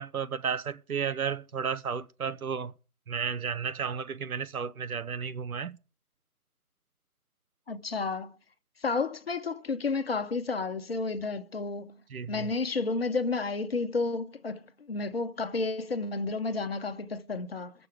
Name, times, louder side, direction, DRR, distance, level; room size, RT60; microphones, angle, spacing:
voice 1, 0.0-2.7 3.1-5.8 12.1-12.5, right 6 dB, 70° right, 0.8 m, -33 dB
voice 2, 7.7-8.3 8.8-11.9 12.3-14.6 14.9-17.7, left 3 dB, 40° left, 0.7 m, -31 dB
20.0 x 6.9 x 4.9 m
figure-of-eight pair, 155°, 45 cm